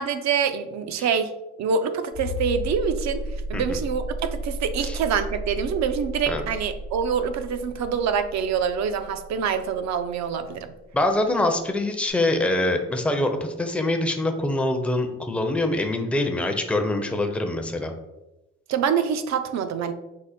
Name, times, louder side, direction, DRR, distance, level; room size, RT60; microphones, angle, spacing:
voice 1, 0.0-1.3 1.6-3.2 3.5-10.7 18.7-19.9, right 6 dB, 65° right, 9 dB, 0.5 m, -25 dB
sound 1, 2.1-10.6 12.1-12.2, equal, 65° left, 0.6 m, -33 dB
voice 2, 10.9-17.9, left 1 dB, 5° left, 5 dB, 0.5 m, -24 dB
4.9 x 2.1 x 4.1 m, 0.97 s
cardioid pair, 90°, 30 cm